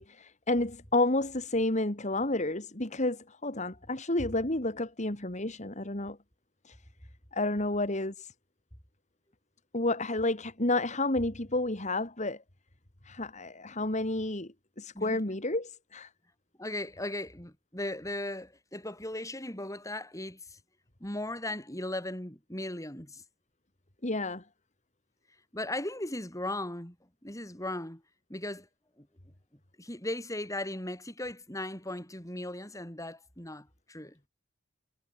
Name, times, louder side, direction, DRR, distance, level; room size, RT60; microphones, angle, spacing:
voice 1, 0.0-6.2 6.6-6.8 7.3-8.3 9.7-12.4 13.0-16.1 24.0-24.4, left 2 dB, 35° left, 2.6 m, -30 dB
voice 2, 16.6-20.6 21.0-23.2 25.5-27.0 27.2-28.0 28.3-28.7 29.0-29.1 29.8-34.2, left 1 dB, 15° left, 7.6 m, -37 dB
head